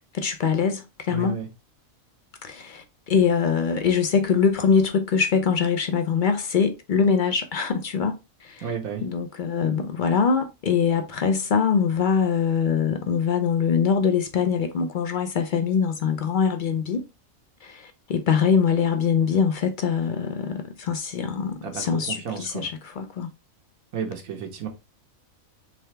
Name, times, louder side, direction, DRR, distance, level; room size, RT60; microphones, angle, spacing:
voice 1, 0.1-1.4 2.4-8.7 9.0-17.0 17.6-23.3, left 6 dB, 55° left, 0.5 m, -23 dB
voice 2, 1.1-1.5 8.6-9.0 21.6-22.7 23.9-24.7, right 7 dB, 85° right, 1.4 m, -32 dB
3.8 x 3.3 x 3.2 m
omnidirectional pair, 1.4 m